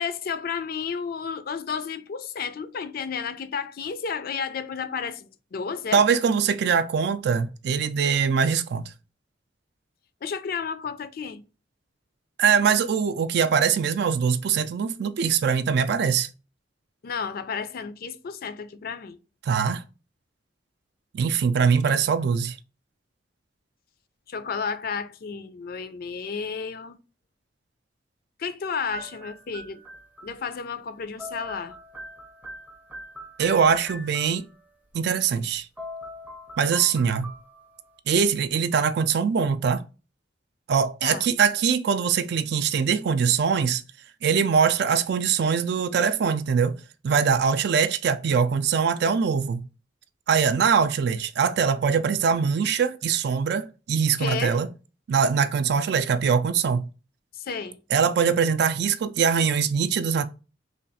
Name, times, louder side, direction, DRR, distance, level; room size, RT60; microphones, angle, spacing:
voice 1, 0.0-6.0 10.2-11.4 17.0-19.2 24.3-27.0 28.4-29.8 30.2-31.8 41.0-41.2 54.2-54.6 57.4-57.8, left 6 dB, 55° left, 0.4 m, -32 dB
voice 2, 5.9-8.9 12.4-16.3 19.4-19.8 21.1-22.6 33.4-34.5 34.9-35.7 36.6-37.3 38.1-39.8 40.7-43.8 44.2-46.8 47.0-49.7 50.3-54.7 55.1-56.9 57.9-60.3, right 6 dB, 60° right, 0.3 m, -22 dB
sound 1, 28.9-30.7 30.9-34.6 35.5-35.6 35.8-37.9, right 1 dB, 10° right, 0.5 m, -41 dB
3.2 x 2.3 x 4.0 m
head